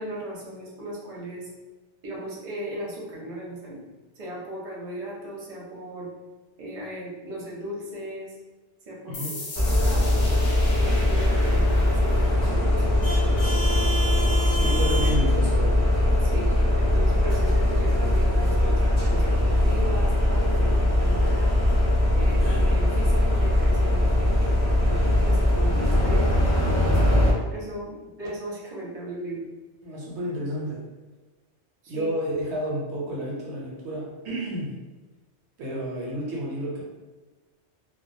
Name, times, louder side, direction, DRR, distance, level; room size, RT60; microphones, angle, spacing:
voice 1, 0.0-1.5 2.0-3.8 4.1-6.1 6.6-8.4 8.9-10.1 10.7-13.8 14.5-14.7 16.2-16.5 16.8-21.5 22.1-26.5 27.1-27.2 27.5-29.4 31.8-32.1, right 1 dB, 40° right, -5 dB, 0.6 m, -37 dB
sound 1, 9.1-16.5, left 2 dB, 65° left, 0.8 m, -41 dB
sound 2, 9.5-27.3, left 1 dB, 25° left, 0.7 m, -21 dB
voice 2, 14.5-15.8 29.8-30.9 31.9-34.8 35.6-36.8, equal, 75° right, -3 dB, 0.9 m, -31 dB
2.2 x 2.2 x 2.5 m, 1.2 s
omnidirectional pair, 1.2 m